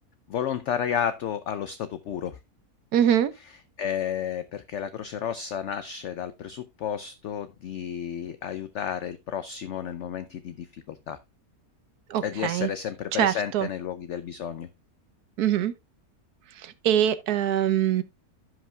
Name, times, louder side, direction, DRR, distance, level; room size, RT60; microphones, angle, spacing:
voice 1, 0.3-2.4 3.8-11.2 12.2-14.7, left 8 dB, 65° left, 0.8 m, -32 dB
voice 2, 2.9-3.3 12.1-12.7 13.1-13.7 15.4-15.7 16.6-18.0, right 10 dB, 85° right, 1.3 m, -23 dB
15.5 x 5.4 x 2.2 m
omnidirectional pair, 1.6 m